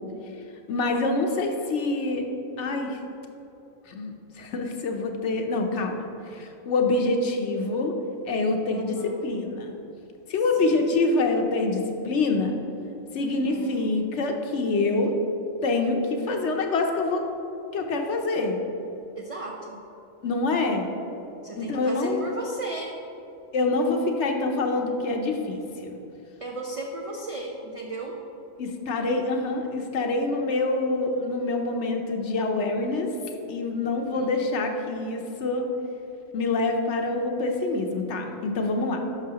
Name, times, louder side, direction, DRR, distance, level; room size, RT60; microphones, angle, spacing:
voice 1, 0.7-2.2 2.6-3.0 3.9-4.1 4.4-7.9 8.3-9.0 9.2-9.8 10.3-12.6 13.1-15.1 15.6-17.2 17.7-18.6 20.2-20.9 21.6-22.3 23.5-26.0 28.6-33.1 33.5-35.7 36.3-39.0, left 3 dB, 65° left, 3 dB, 1.0 m, -26 dB
voice 2, 8.7-9.2 10.6-10.8 13.2-13.9 19.2-19.8 21.4-23.0 26.4-28.2 34.0-34.6, right 2 dB, 45° right, -1 dB, 0.4 m, -36 dB
11.0 x 5.7 x 2.9 m, 2.9 s
omnidirectional pair, 1.3 m